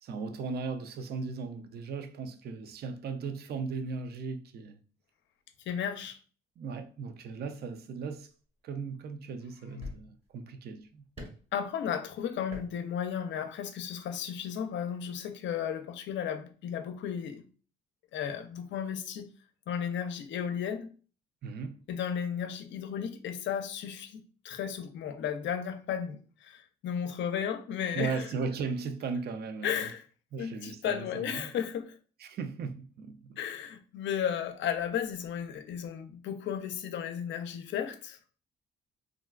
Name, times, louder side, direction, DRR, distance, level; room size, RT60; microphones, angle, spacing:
voice 1, 0.0-4.8 6.6-8.3 8.6-11.0 21.4-21.8 27.9-29.9 30.3-31.5 32.2-33.4, right 5 dB, 55° right, 0.4 m, -37 dB
voice 2, 5.7-6.2 9.6-9.9 11.5-17.4 18.1-19.3 19.7-20.9 21.9-28.3 29.6-30.0 30.4-32.0 33.4-38.2, left 8 dB, 70° left, 0.5 m, -34 dB
sound 1, 8.3-8.4 9.3-9.4 9.8-10.4 11.1-11.5 12.5-12.8 13.0-13.2, left 1 dB, 30° right, 1.1 m, -44 dB
3.7 x 2.3 x 2.3 m
cardioid pair, 90°, 20 cm